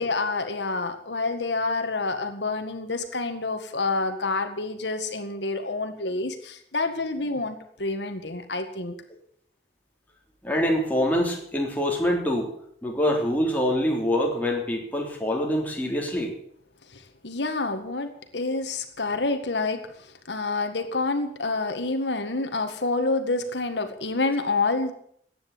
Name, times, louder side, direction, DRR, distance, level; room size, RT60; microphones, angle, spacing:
voice 1, 0.0-8.9 16.9-24.9, left 3 dB, 85° left, 7 dB, 1.8 m, -28 dB
voice 2, 10.4-12.5 12.8-16.3, equal, 10° left, -1 dB, 3.6 m, -25 dB
15.0 x 9.7 x 8.6 m, 0.65 s
head